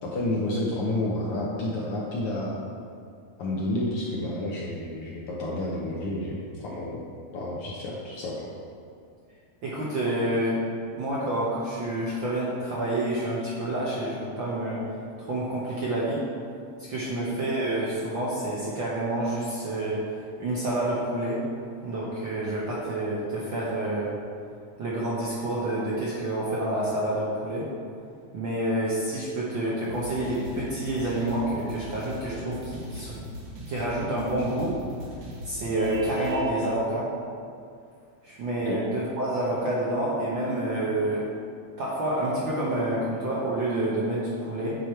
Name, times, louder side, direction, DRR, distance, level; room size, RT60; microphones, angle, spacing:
voice 1, 0.0-2.6 3.4-7.0 7.3-8.5 38.6-38.8, left 1 dB, 65° left, -4 dB, 1.4 m, -30 dB
voice 2, 9.6-10.6 11.0-14.8 15.2-16.2 16.9-21.4 21.8-24.2 24.8-27.7 28.3-33.2 33.7-34.8 35.4-37.1 38.2-41.3 41.8-44.8, right 1 dB, 60° right, -6 dB, 1.3 m, -28 dB
sound 1, 29.8-36.4, equal, 85° right, 2.9 m, -40 dB
Vehicle horn car horn honking, 35.7-36.5, left 2 dB, 40° left, 1.6 m, -36 dB
9.2 x 4.9 x 4.5 m, 2.3 s
omnidirectional pair, 3.3 m